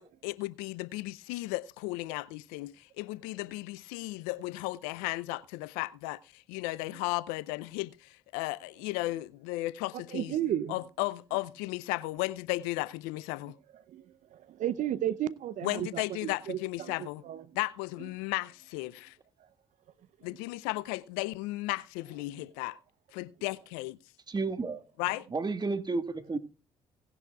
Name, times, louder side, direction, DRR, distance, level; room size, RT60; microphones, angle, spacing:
voice 1, 0.0-10.4 10.7-13.6 15.6-17.2 17.5-19.2 20.2-22.8 23.1-24.0 25.0-25.3, left 20 dB, 75° left, 0.5 m, -35 dB
voice 2, 10.1-10.8 13.9-14.0 14.3-17.4, right 11 dB, 60° right, 0.6 m, -33 dB
voice 3, 24.3-24.8 25.3-26.4, right 3 dB, 30° right, 1.5 m, -31 dB
18.0 x 10.5 x 2.3 m
hypercardioid pair, 50°, 15 cm